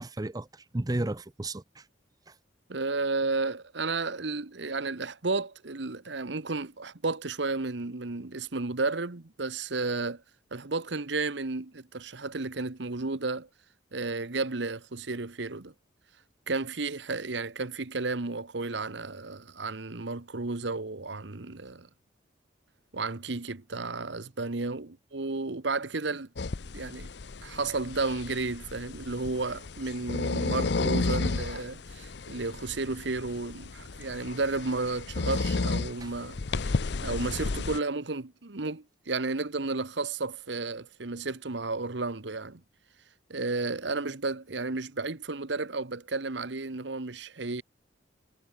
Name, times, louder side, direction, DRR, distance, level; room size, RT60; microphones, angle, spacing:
voice 1, 0.0-1.9 2.3-2.4 36.0-36.1, right 2 dB, 20° right, 0.6 m, -33 dB
voice 2, 2.7-10.2 10.5-13.5 13.9-15.7 16.5-21.9 22.9-26.3 26.7-27.1 27.4-36.7 37.0-42.6 43.3-47.6, right 3 dB, 65° right, 1.2 m, -32 dB
sound 1, 26.4-37.8, left 3 dB, 60° left, 0.7 m, -33 dB
head